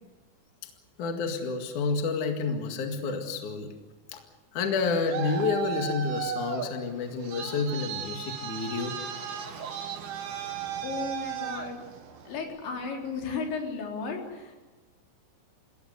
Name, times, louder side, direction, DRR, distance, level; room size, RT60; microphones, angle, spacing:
voice 1, 1.0-3.7 4.1-4.2 4.5-9.0, left 4 dB, 50° left, 4 dB, 3.0 m, -29 dB
Traffic noise roadway noise, 4.7-12.4, right 8 dB, 65° right, 3.7 m, -36 dB
voice 2, 10.8-11.8 12.3-14.6, left 4 dB, 80° left, 1 dB, 6.1 m, -34 dB
29.0 x 17.5 x 8.1 m, 1.2 s
omnidirectional pair, 5.2 m